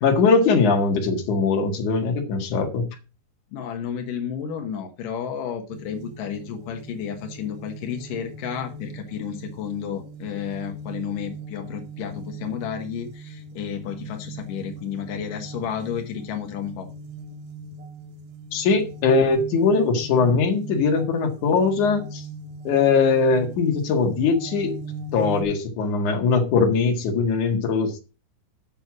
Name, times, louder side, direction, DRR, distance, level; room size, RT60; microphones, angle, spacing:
voice 1, 0.0-2.9 18.5-22.2 22.6-24.7 25.1-28.0, left 4 dB, 55° left, 2 dB, 2.3 m, -21 dB
voice 2, 3.5-16.9, left 8 dB, 85° left, 4 dB, 1.8 m, -32 dB
sound 1, 5.7-25.4, right 2 dB, 85° right, 3.6 m, -39 dB
9.2 x 6.8 x 6.1 m, 0.32 s
omnidirectional pair, 6.0 m